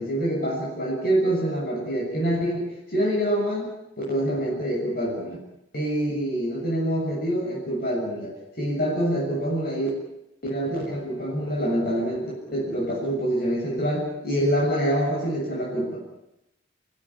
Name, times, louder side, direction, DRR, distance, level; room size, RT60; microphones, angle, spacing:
voice 1, 0.0-3.7 4.1-5.4 5.7-9.9 10.4-16.0, right 1 dB, 50° left, -3 dB, 7.0 m, -26 dB
29.5 x 16.5 x 10.0 m, 0.89 s
head